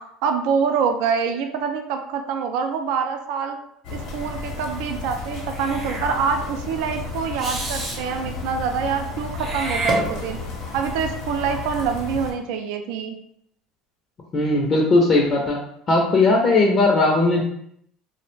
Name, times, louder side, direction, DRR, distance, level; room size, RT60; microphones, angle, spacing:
voice 1, 0.0-3.6 3.9-10.4 10.7-13.2, right 6 dB, 75° right, 5 dB, 0.3 m, -25 dB
sound 1, 3.8-12.3, left 4 dB, 65° left, 0.8 m, -33 dB
Meow / Hiss, 5.5-6.1 7.4-8.0 9.3-10.6, right 2 dB, 35° right, 0.7 m, -29 dB
voice 2, 14.3-15.6 15.9-17.4, left 2 dB, 35° left, -1 dB, 0.5 m, -18 dB
2.3 x 2.0 x 3.1 m, 0.72 s
supercardioid pair, 115°, 0 cm